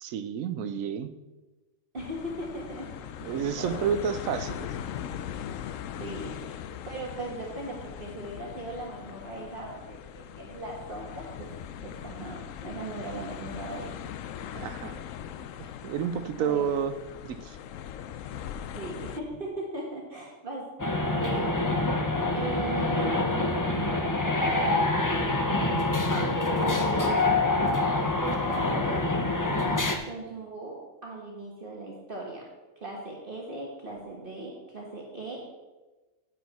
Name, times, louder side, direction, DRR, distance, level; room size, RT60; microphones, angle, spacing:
voice 1, 0.0-1.1 3.2-4.7 14.5-15.0 15.8-16.9 17.2-17.6, right 8 dB, 85° right, 12 dB, 1.1 m, -30 dB
voice 2, 1.9-4.0 6.0-11.5 11.8-13.9 16.2-16.7 18.7-20.7 21.1-21.7 22.3-23.7 26.1-27.2 27.7-27.8 28.2-29.0 29.3-32.5 32.8-35.5, right 2 dB, 45° right, -2 dB, 1.5 m, -38 dB
sound 1, 2.0-19.2, left 9 dB, 80° left, 1.0 m, -40 dB
sound 2, 20.8-29.9, left 2 dB, 20° left, 0.7 m, -26 dB
10.5 x 8.7 x 4.1 m, 1.2 s
omnidirectional pair, 1.4 m